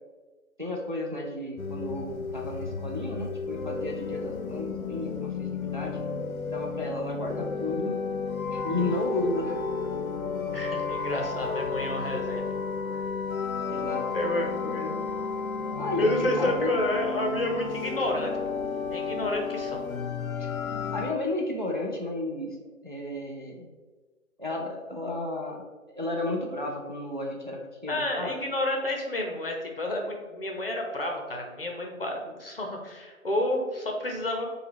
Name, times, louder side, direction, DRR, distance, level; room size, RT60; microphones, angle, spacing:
voice 1, 0.6-6.0 6.5-8.0 8.5-9.5 13.7-14.1 14.8-14.9 15.8-16.7 20.4-20.5 20.9-22.6 22.8-23.7 24.4-25.6 25.9-28.4, left 2 dB, 40° right, -1 dB, 0.4 m, -33 dB
sound 1, 1.6-21.1, left 5 dB, 90° left, 0.6 m, -32 dB
voice 2, 10.5-12.5 14.1-15.0 16.0-18.3 18.9-19.8 27.9-34.5, left 1 dB, 45° left, 1 dB, 0.7 m, -30 dB
4.9 x 2.3 x 3.3 m, 1.3 s
figure-of-eight pair, 155°, 41 cm